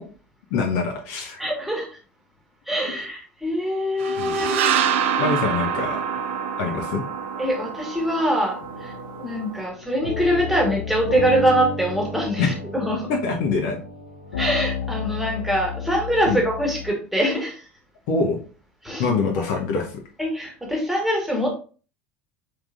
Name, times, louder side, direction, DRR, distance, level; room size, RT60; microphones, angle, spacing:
voice 1, 0.5-1.4 4.2-4.5 5.2-6.0 6.6-7.0 12.4-12.5 13.1-13.8 16.3-16.4 18.1-18.4 19.0-20.0, left 4 dB, 55° left, 2 dB, 0.9 m, -24 dB
voice 2, 1.4-1.9 2.7-5.3 7.4-8.9 9.2-13.1 14.4-17.7 18.8-19.0 20.2-21.5, equal, ahead, 0 dB, 1.5 m, -24 dB
sound 1, 4.0-9.7, right 8 dB, 60° right, 0.4 m, -26 dB
sound 2, 8.6-16.9, left 4 dB, 75° left, 1.1 m, -32 dB
4.8 x 3.7 x 2.5 m, 0.38 s
figure-of-eight pair, 70°, 7 cm